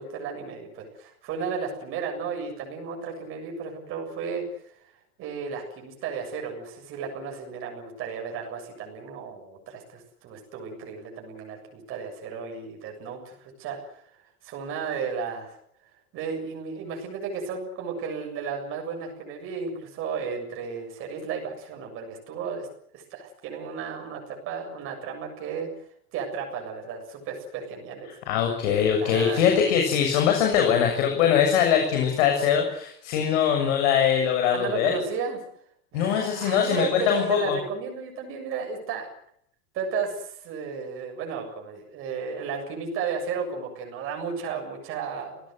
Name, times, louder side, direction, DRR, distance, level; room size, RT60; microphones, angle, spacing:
voice 1, 0.0-4.4 5.2-14.0 14.4-15.6 16.1-22.7 22.9-25.7 26.1-28.2 29.0-29.5 34.5-35.4 35.9-39.1 39.7-45.4, right 5 dB, 30° right, 2 dB, 7.3 m, -34 dB
voice 2, 28.3-34.9 35.9-37.6, left 8 dB, 50° left, 3 dB, 7.1 m, -22 dB
29.0 x 18.5 x 8.0 m, 0.68 s
supercardioid pair, 170°, 44 cm